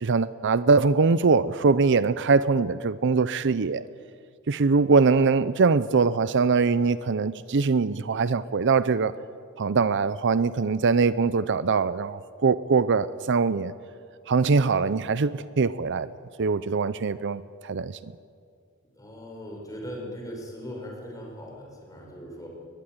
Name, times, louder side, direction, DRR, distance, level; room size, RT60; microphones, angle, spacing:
voice 1, 0.0-3.9 4.5-9.1 9.6-13.7 14.3-16.1 16.4-18.0, right 4 dB, 55° right, 15 dB, 0.6 m, -22 dB
voice 2, 18.9-22.5, equal, 15° left, -1 dB, 6.5 m, -39 dB
21.5 x 21.5 x 9.6 m, 2.3 s
head